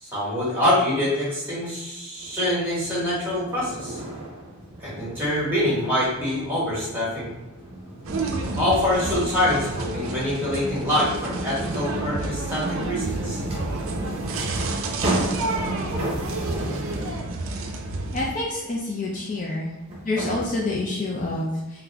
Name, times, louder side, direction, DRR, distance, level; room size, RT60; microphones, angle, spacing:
voice 1, 0.0-4.0 4.8-7.3 8.6-13.4, left 1 dB, 10° right, -7 dB, 1.4 m, -25 dB
sound 1, 2.2-17.3 19.1-19.2 19.9-20.5, right 1 dB, 25° right, 0.8 m, -34 dB
sound 2, 8.0-18.3, right 3 dB, 65° right, 0.4 m, -30 dB
voice 2, 18.1-19.7 20.0-21.8, left 2 dB, 35° left, -3 dB, 0.4 m, -27 dB
3.8 x 2.2 x 3.4 m, 1.0 s
head